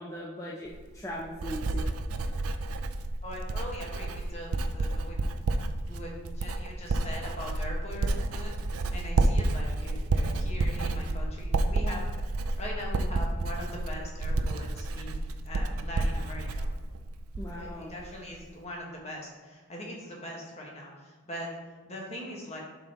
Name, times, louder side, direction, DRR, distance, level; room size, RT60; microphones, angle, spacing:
voice 1, 0.0-1.9 17.4-18.0, equal, 15° left, -5 dB, 0.6 m, -39 dB
Writing, 0.7-17.7 18.0-18.5, right 2 dB, 80° right, 0.5 m, -30 dB
voice 2, 3.2-5.2 5.9-16.7 17.5-22.6, left 1 dB, 30° left, -2 dB, 1.5 m, -41 dB
7.4 x 5.6 x 3.0 m, 1.5 s
head